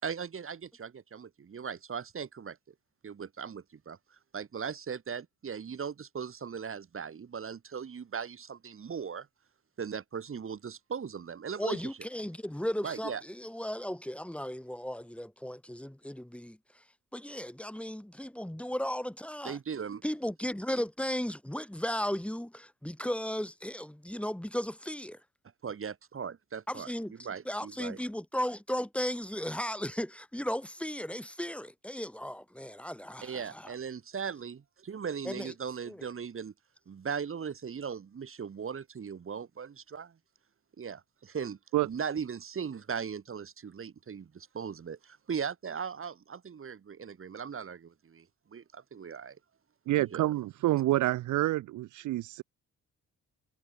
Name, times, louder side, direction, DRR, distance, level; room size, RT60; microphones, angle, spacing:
voice 1, 0.0-2.7 3.0-4.0 4.3-9.3 9.8-11.8 12.8-13.2 19.4-20.0 25.6-26.9 27.2-28.0 33.2-36.5 36.9-40.1 40.8-41.6 41.8-48.3 48.5-49.4 50.0-50.3, right 6 dB, 45° right, 5.9 m, -38 dB
voice 2, 11.6-16.8 17.1-19.6 20.0-25.2 26.7-27.1 27.4-33.7 35.2-35.5 35.9-36.0, equal, 5° left, 4.9 m, -35 dB
voice 3, 49.9-52.4, right 16 dB, 75° right, 0.7 m, -28 dB
cardioid pair, 90°, 30 cm